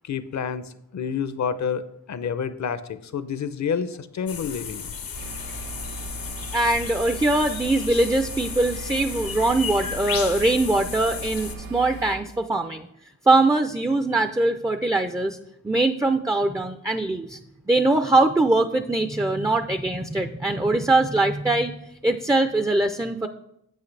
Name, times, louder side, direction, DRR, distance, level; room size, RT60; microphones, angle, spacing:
voice 1, 0.0-1.8 2.1-4.9, left 7 dB, 50° left, 13 dB, 0.7 m, -29 dB
sound 1, 4.3-11.6, left 7 dB, 75° left, 0.9 m, -34 dB
sound 2, 5.1-12.2, right 3 dB, 85° right, 1.2 m, -38 dB
voice 2, 6.5-12.9 13.3-15.4 15.6-17.4 17.7-23.3, right 2 dB, 10° right, 8 dB, 0.4 m, -22 dB
8.3 x 7.9 x 3.3 m, 0.77 s
cardioid pair, 60°, 35 cm